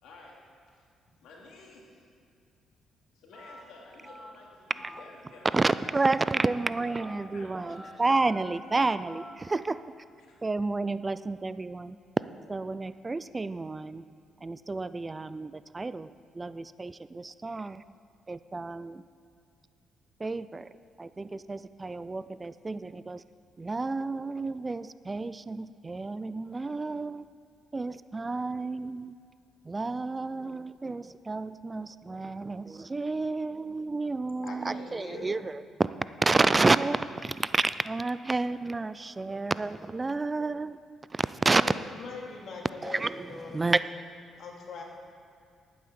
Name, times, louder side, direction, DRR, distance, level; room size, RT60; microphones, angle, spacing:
voice 1, 0.0-0.4 0.7-0.9 1.2-2.1 3.1-5.5 6.0-6.2 6.8-8.4 8.7-8.9 10.2-10.4, left 3 dB, 85° left, -2 dB, 2.7 m, -52 dB
Telephone, 3.3-3.6 4.0-4.3 4.7-5.0 5.5-5.7 6.2-6.5 6.9-7.2 7.6-7.9 8.3-8.6 9.0-9.3, equal, 5° left, 3.9 m, -47 dB
voice 2, 5.5-9.8 10.4-12.0 12.5-14.0 14.4-17.8 18.3-19.0 20.2-20.7 21.0-23.2 23.6-27.2 27.7-29.1 29.6-35.9 36.2-40.8 41.1-41.7 42.8-43.8, right 3 dB, 25° right, 15 dB, 0.3 m, -30 dB
voice 3, 34.4-35.5 41.6-41.7 42.0-43.6 44.4-44.8, left 3 dB, 65° left, -1 dB, 2.5 m, -41 dB
11.5 x 9.3 x 6.9 m, 2.3 s
cardioid pair, 90°, 0 cm